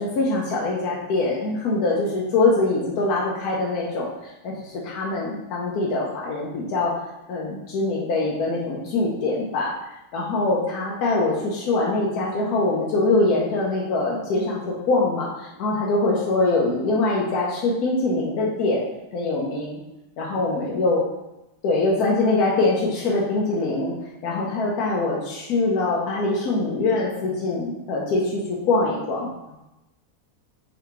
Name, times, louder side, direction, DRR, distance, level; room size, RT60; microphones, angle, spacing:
voice 1, 0.0-7.0 7.3-9.7 10.1-18.8 19.1-19.8 20.2-21.0 21.6-23.9 24.2-28.4 28.7-29.6, left 2 dB, 85° left, -4 dB, 1.1 m, -23 dB
3.7 x 3.3 x 3.0 m, 0.95 s
omnidirectional pair, 1.6 m